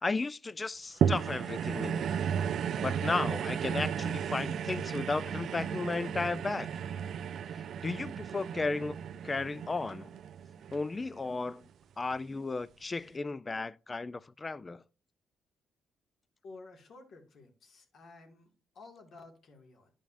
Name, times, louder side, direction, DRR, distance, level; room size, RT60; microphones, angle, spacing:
voice 1, 0.0-2.1 2.8-6.7 7.8-9.0 9.2-10.1 10.7-11.6 12.0-14.8, left 3 dB, 25° left, 0.4 m, -34 dB
sound 1, 1.0-11.5 12.1-12.2, right 8 dB, 65° right, 0.3 m, -34 dB
voice 2, 16.4-19.9, left 3 dB, 60° left, 2.0 m, -53 dB
11.5 x 5.1 x 2.6 m
cardioid pair, 90°, 0 cm